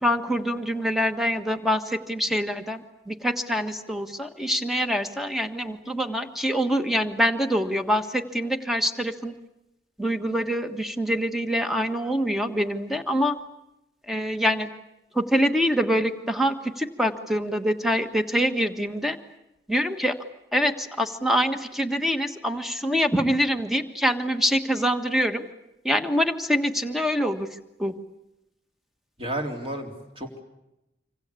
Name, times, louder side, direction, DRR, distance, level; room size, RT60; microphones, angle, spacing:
voice 1, 0.0-9.3 10.0-13.4 14.1-14.7 15.1-19.2 19.7-20.2 20.5-25.5 25.8-27.9, equal, ahead, 6 dB, 1.5 m, -25 dB
voice 2, 29.2-30.4, right 1 dB, 30° right, 3 dB, 3.7 m, -32 dB
26.5 x 26.0 x 8.4 m, 0.90 s
head